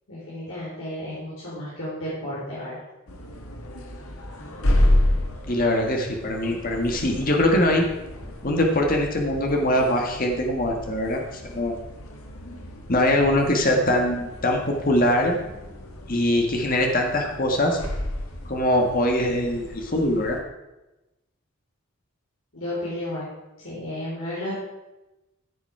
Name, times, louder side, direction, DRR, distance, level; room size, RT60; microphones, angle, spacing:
voice 1, 0.1-2.8 22.5-23.3 23.6-24.5, left 1 dB, 65° left, -8 dB, 4.1 m, -32 dB
sound 1, 3.1-20.4, left 1 dB, 80° left, 1.6 m, -30 dB
voice 2, 5.5-7.8 8.4-11.8 12.9-15.3 16.1-17.8 18.4-20.4, left 1 dB, 40° left, 2 dB, 1.6 m, -22 dB
15.0 x 7.1 x 4.8 m, 1.0 s
head